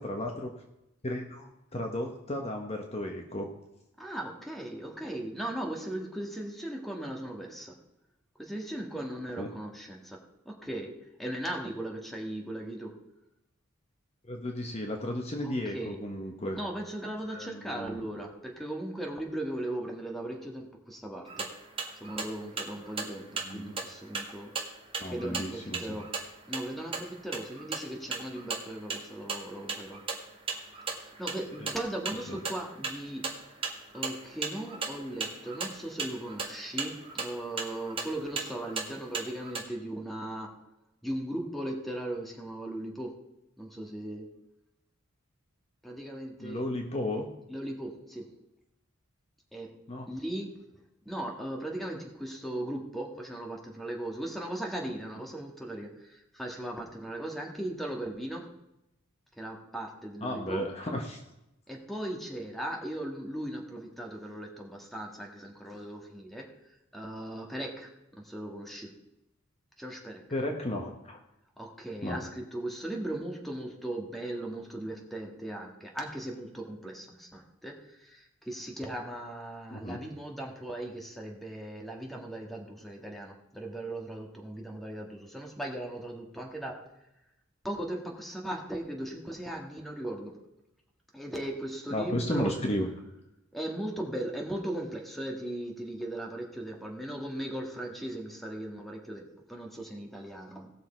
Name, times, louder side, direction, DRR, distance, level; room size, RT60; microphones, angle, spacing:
voice 1, 0.0-0.5 1.0-3.5 9.4-9.5 14.2-16.6 17.3-18.0 23.4-23.8 25.0-26.0 31.6-31.7 32.3-32.4 46.4-47.3 49.9-50.1 60.2-61.2 70.3-71.2 72.0-72.2 79.7-80.1 91.9-92.9, left 1 dB, 30° left, 2 dB, 1.1 m, -34 dB
voice 2, 4.0-7.8 8.4-13.0 15.4-16.0 16.5-21.5 22.0-24.5 25.1-26.1 26.5-30.0 30.9-33.3 33.9-40.6 41.0-43.2 43.6-44.3 45.8-46.6 47.5-48.3 49.5-49.7 50.1-50.6 51.0-58.5 59.4-60.7 61.7-66.5 66.9-67.9 68.2-68.9 69.8-70.2 71.6-86.8 87.6-90.4 91.1-92.5 93.5-100.7, right 1 dB, ahead, 0 dB, 1.7 m, -38 dB
sound 1, 21.3-39.6, right 4 dB, 25° right, 1.7 m, -38 dB
18.5 x 6.4 x 4.5 m, 0.89 s
head